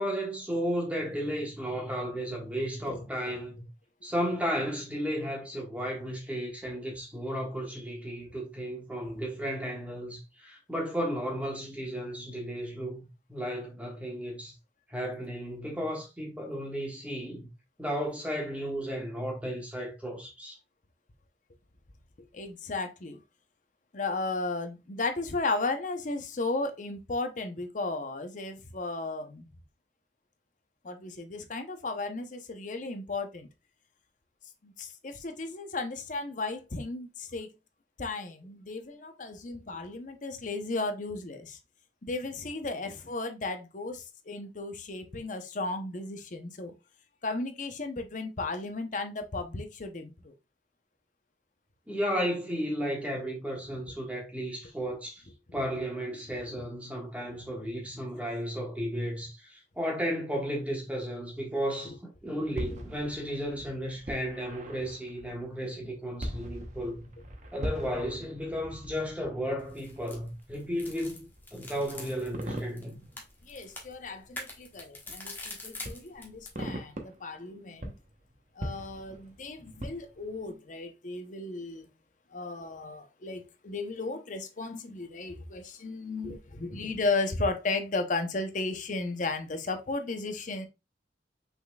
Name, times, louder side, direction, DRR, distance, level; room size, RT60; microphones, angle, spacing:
voice 1, 0.0-3.6 4.0-14.5 14.9-17.5 17.8-20.6 51.9-55.3 55.5-67.1 67.5-73.1, equal, 10° right, 1.4 m, -34 dB
voice 2, 22.3-23.2 23.9-29.5 30.8-33.5 34.6-37.5 38.0-41.6 42.0-46.7 47.2-50.3 73.4-77.9 78.6-81.9 82.3-90.7, left 3 dB, 45° left, 0.7 m, -35 dB
sound 1, 62.4-74.4 75.1-75.2 75.8-77.4 77.7-80.5, equal, 40° right, 0.9 m, -42 dB
sound 2, 69.6-76.6, left 2 dB, 10° left, 1.1 m, -45 dB
5.7 x 4.0 x 2.3 m
head